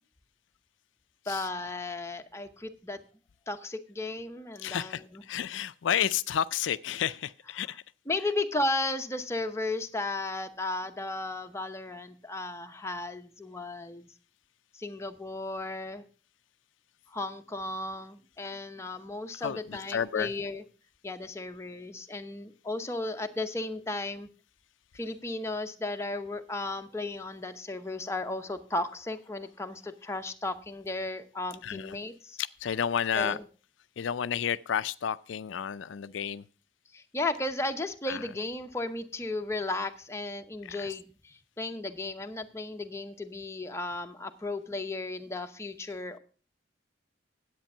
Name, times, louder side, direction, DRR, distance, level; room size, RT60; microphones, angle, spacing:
voice 1, 1.3-3.0 3.5-5.2 8.1-14.1 14.7-16.0 17.1-20.6 21.0-24.3 24.9-32.4 33.1-33.4 36.9-46.2, left 2 dB, 15° left, 0.8 m, -35 dB
voice 2, 4.6-7.8 8.2-8.3 19.4-20.3 31.6-32.0 32.4-33.4 34.0-36.4 38.1-38.3 40.6-41.0, left 8 dB, 85° left, 0.4 m, -31 dB
10.5 x 8.3 x 5.5 m
head